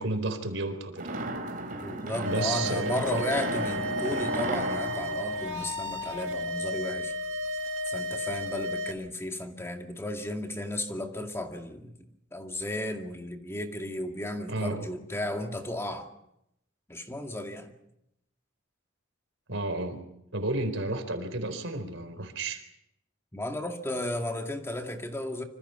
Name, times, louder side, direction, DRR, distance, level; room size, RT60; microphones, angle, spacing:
voice 1, 0.0-1.3 2.2-3.3 14.5-14.8 19.5-20.0 20.3-22.6, right 2 dB, 75° right, 9 dB, 4.2 m, -32 dB
sound 1, 1.0-6.3, right 2 dB, 45° right, 3.7 m, -35 dB
voice 2, 1.8-7.1 7.9-11.9 12.3-16.1 16.9-17.7 23.3-25.4, left 1 dB, 15° left, 4 dB, 2.2 m, -34 dB
sound 2, 2.2-8.9, left 1 dB, 90° right, 1.9 m, -33 dB
26.5 x 25.5 x 5.9 m, 0.80 s
head